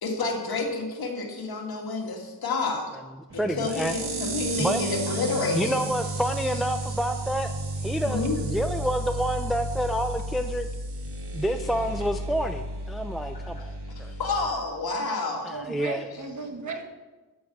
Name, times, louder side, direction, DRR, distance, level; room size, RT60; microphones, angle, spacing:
voice 1, 0.0-2.9 3.3-5.8 8.0-8.4 13.6-13.7 14.0-15.5, left 3 dB, 70° left, 1 dB, 2.3 m, -29 dB
sound 1, 3.3-14.5, right 1 dB, 85° right, 1.8 m, -33 dB
voice 2, 3.4-4.0 4.6-4.8 5.5-7.5 7.8-10.7 11.3-14.1 15.4-16.1, equal, ahead, 6 dB, 0.4 m, -28 dB
voice 3, 15.5-17.0, right 4 dB, 50° right, 5 dB, 1.4 m, -36 dB
8.4 x 8.2 x 7.0 m, 1.2 s
wide cardioid pair, 110°, 39 cm